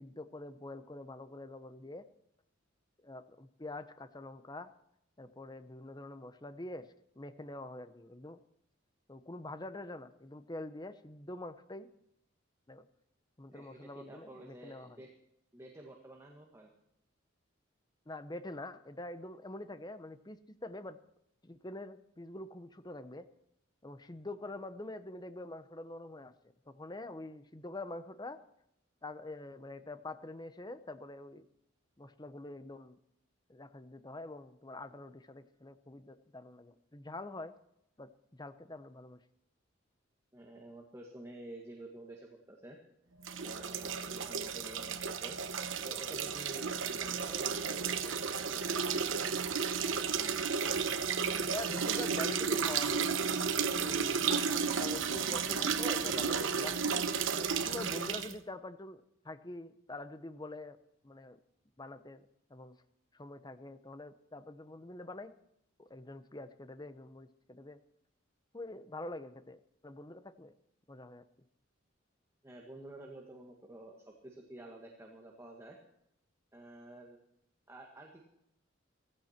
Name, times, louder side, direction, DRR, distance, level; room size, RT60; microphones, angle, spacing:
voice 1, 0.0-2.0 3.0-4.7 5.2-6.9 7.2-8.4 9.1-11.9 12.7-12.8 13.4-15.0 18.1-21.0 21.4-23.3 23.8-28.4 29.0-31.5 32.0-33.0 33.5-37.5 38.0-39.2 51.4-53.1 53.7-54.3 54.6-56.8 57.3-60.8 61.0-61.4 61.8-62.8 63.1-65.3 65.8-67.8 68.5-70.5 70.9-71.2, left 2 dB, 20° left, 11 dB, 0.9 m, -45 dB
voice 2, 13.5-15.1 15.5-16.7 40.3-42.8 43.4-45.4 45.8-49.0 72.4-75.8 76.5-77.2 77.7-78.3, right 1 dB, 15° right, 0 dB, 1.8 m, -50 dB
sound 1, 43.2-58.3, right 6 dB, 70° right, 1.1 m, -33 dB
16.5 x 15.5 x 4.5 m, 0.79 s
head